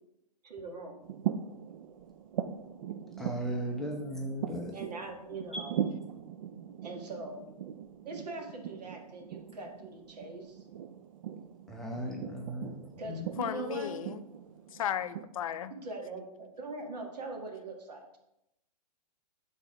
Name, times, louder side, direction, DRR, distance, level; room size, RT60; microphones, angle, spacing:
voice 1, 0.4-0.9 4.7-5.7 6.8-7.4 8.0-10.6 13.0-13.9 15.7-18.2, right 3 dB, 75° right, 1.6 m, -41 dB
sound 1, 1.0-15.2, right 9 dB, 55° right, 0.4 m, -40 dB
voice 2, 3.2-4.7 5.5-5.7 11.7-12.7 13.0-13.3, equal, ahead, 0.5 m, -36 dB
voice 3, 13.4-14.2 14.7-15.7, left 10 dB, 55° left, 0.4 m, -34 dB
5.6 x 4.0 x 4.8 m
hypercardioid pair, 155°, 21 cm